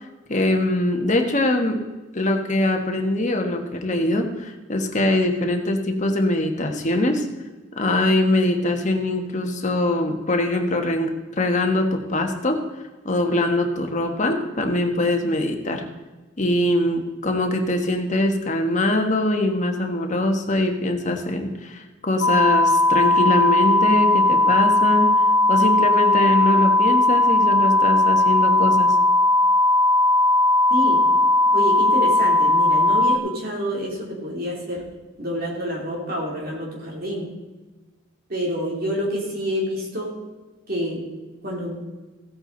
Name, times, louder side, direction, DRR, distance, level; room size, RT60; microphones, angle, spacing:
voice 1, 0.3-1.8 2.1-7.3 7.8-12.6 13.0-15.8 16.4-25.1 25.5-28.9, left 1 dB, 40° left, 3 dB, 1.4 m, -22 dB
sound 1, 22.2-33.2, left 2 dB, 70° left, 0.7 m, -17 dB
voice 2, 31.5-34.8 35.2-37.3 38.3-40.1 40.7-41.0 41.4-41.8, equal, 50° right, -2 dB, 3.0 m, -28 dB
15.5 x 8.6 x 3.9 m, 1.2 s
head